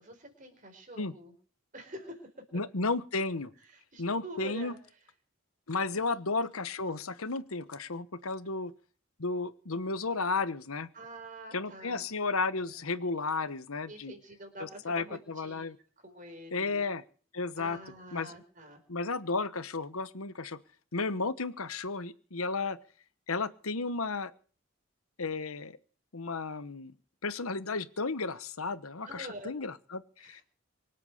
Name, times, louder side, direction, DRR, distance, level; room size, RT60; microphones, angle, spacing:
voice 1, 0.0-1.3 1.7-2.2 3.6-4.8 5.9-6.2 10.9-12.1 12.5-12.9 13.9-15.7 16.0-16.9 17.5-18.8 29.1-29.6 30.2-30.4, right 1 dB, 40° right, 5 dB, 4.5 m, -46 dB
voice 2, 2.5-3.5 4.0-4.7 5.7-8.7 9.2-10.9 11.5-14.1 14.6-15.8 16.5-17.0 17.3-17.8 18.1-18.3 18.9-20.6 20.9-22.8 23.3-24.3 25.2-25.8 26.1-26.9 27.2-30.4, left 3 dB, 85° left, 14 dB, 1.2 m, -33 dB
24.5 x 8.3 x 6.6 m, 0.43 s
head